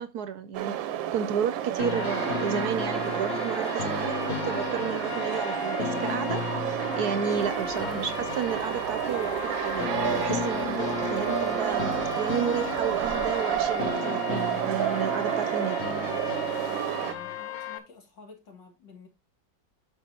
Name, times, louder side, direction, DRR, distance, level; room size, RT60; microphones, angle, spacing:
voice 1, 0.0-6.6 6.9-15.8, right 7 dB, 65° right, 1.1 m, -32 dB
sound 1, 0.5-17.1, right 11 dB, 85° right, 1.5 m, -30 dB
sound 2, 1.8-17.8, left 6 dB, 50° left, 0.8 m, -34 dB
sound 3, 7.3-13.9, right 1 dB, 35° left, 1.9 m, -51 dB
voice 2, 17.0-19.1, left 4 dB, 70° left, 3.0 m, -50 dB
9.3 x 6.5 x 2.8 m
omnidirectional pair, 2.1 m